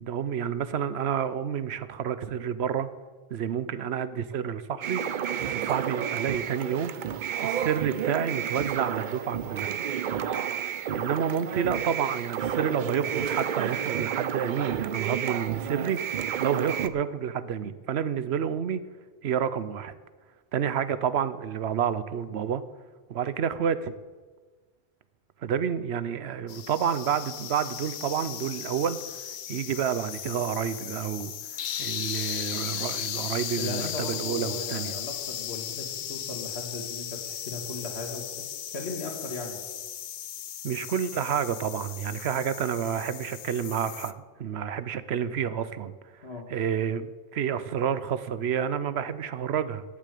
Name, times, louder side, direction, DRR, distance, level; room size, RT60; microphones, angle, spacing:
voice 1, 0.0-2.9 3.3-5.0 5.5-6.9 7.4-9.7 10.9-16.0 16.4-18.8 19.2-19.9 20.5-22.6 23.1-23.9 25.4-29.0 29.5-31.3 31.8-34.9 40.6-44.1 44.4-45.9 46.5-49.8, right 8 dB, 85° right, 14 dB, 1.0 m, -29 dB
sound 1, 4.8-16.9, right 8 dB, 55° right, 0.7 m, -31 dB
sound 2, 26.5-44.1, left 10 dB, 60° left, 0.6 m, -36 dB
voice 2, 33.6-38.5 38.7-39.6 46.2-46.5, left 3 dB, 90° left, 2 dB, 2.5 m, -37 dB
11.0 x 8.6 x 8.4 m, 1.4 s
omnidirectional pair, 1.1 m